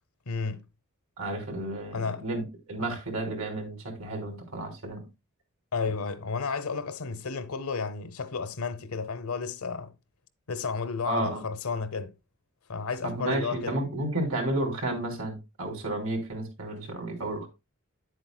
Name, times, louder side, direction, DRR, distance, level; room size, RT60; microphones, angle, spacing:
voice 1, 0.3-0.6 1.9-2.2 5.7-9.9 10.5-12.1 12.7-13.8, left 5 dB, 85° left, 0.9 m, -32 dB
voice 2, 1.2-5.1 11.0-11.4 13.0-17.5, right 1 dB, 80° right, 3.1 m, -32 dB
10.5 x 7.9 x 2.3 m
head